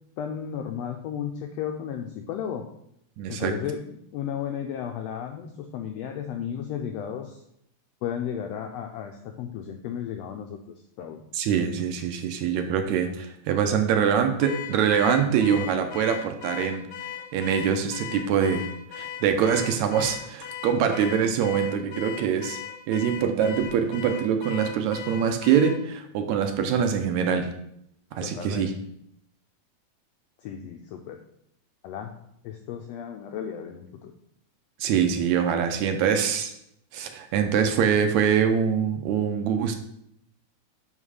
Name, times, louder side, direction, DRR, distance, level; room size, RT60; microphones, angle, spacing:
voice 1, 0.2-2.6 3.3-7.4 8.0-11.2 28.2-28.7 30.4-31.2 31.8-32.1 32.4-34.1, left 8 dB, 90° left, 4 dB, 1.4 m, -34 dB
voice 2, 3.2-3.5 11.3-16.9 17.3-18.7 19.0-22.6 22.9-27.5 28.1-28.7 34.8-36.5 36.9-39.8, right 7 dB, 75° right, 6 dB, 1.9 m, -24 dB
Car / Alarm, 14.4-25.8, left 9 dB, 75° left, 1.3 m, -38 dB
5.6 x 5.4 x 4.8 m, 0.75 s
omnidirectional pair, 3.5 m